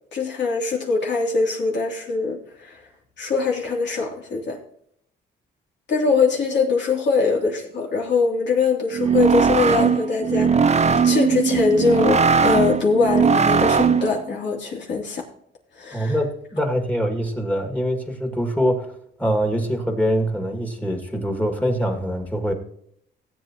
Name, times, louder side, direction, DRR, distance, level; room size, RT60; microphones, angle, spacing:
voice 1, 0.1-2.8 3.2-4.6 5.9-15.2 15.7-16.1, left 4 dB, 65° left, -1 dB, 3.0 m, -22 dB
sound 1, 8.9-14.2, right 6 dB, 35° right, 0.7 m, -19 dB
voice 2, 15.9-22.5, equal, 5° left, 3 dB, 2.2 m, -24 dB
17.5 x 8.4 x 3.0 m, 0.68 s
cardioid pair, 90°, 20 cm